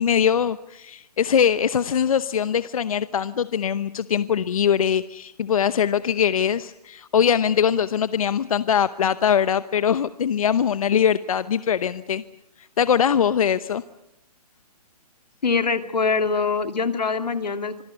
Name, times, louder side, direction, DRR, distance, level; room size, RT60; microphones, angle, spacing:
voice 1, 0.0-12.2 12.6-13.8, left 8 dB, 60° left, 14 dB, 0.9 m, -22 dB
voice 2, 15.4-17.8, left 4 dB, 90° left, 8 dB, 2.7 m, -23 dB
26.5 x 21.5 x 8.1 m, 0.84 s
hypercardioid pair, 155°, 21 cm